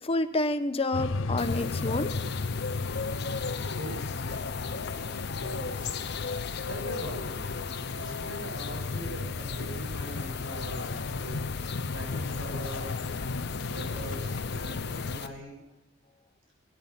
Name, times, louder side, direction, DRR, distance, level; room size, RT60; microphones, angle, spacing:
voice 1, 0.0-2.1, left 2 dB, 30° left, 9 dB, 1.0 m, -28 dB
sound 1, 0.9-15.2, left 3 dB, 85° left, 0.7 m, -35 dB
sound 2, 1.4-15.3, left 5 dB, 60° left, 1.1 m, -37 dB
voice 2, 3.7-4.1 5.1-6.0 6.7-7.5 7.9-11.4 11.9-13.0 13.5-15.6, right 1 dB, 90° right, 0 dB, 7.5 m, -41 dB
20.5 x 10.5 x 5.7 m, 0.91 s
head